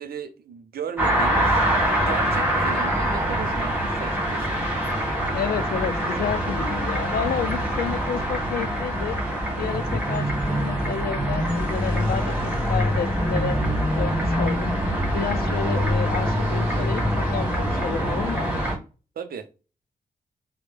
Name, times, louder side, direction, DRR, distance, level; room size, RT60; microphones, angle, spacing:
voice 1, 0.0-4.6 19.2-19.5, right 7 dB, 90° right, 0.5 m, -36 dB
sound 1, 1.0-18.8, equal, 10° right, 1.8 m, -24 dB
voice 2, 5.3-9.2 9.6-13.6 14.0-14.7 15.1-18.5, left 8 dB, 85° left, 0.4 m, -30 dB
4.2 x 2.1 x 3.2 m
cardioid pair, 75°, 15 cm